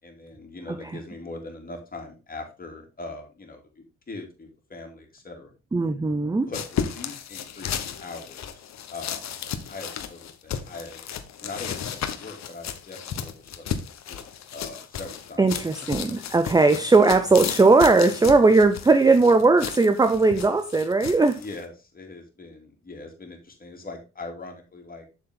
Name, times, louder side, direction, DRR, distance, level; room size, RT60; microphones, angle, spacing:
voice 1, 0.0-5.5 6.5-7.7 8.0-9.4 9.7-11.0 11.4-13.7 14.0-15.5 21.3-25.1, left 3 dB, 30° left, 2 dB, 3.0 m, -41 dB
voice 2, 5.7-6.5 15.4-21.4, right 3 dB, 15° right, 9 dB, 0.6 m, -18 dB
sound 1, 6.5-21.6, left 8 dB, 60° left, 1.1 m, -34 dB
7.3 x 7.0 x 3.8 m, 0.30 s
cardioid pair, 90°, 30 cm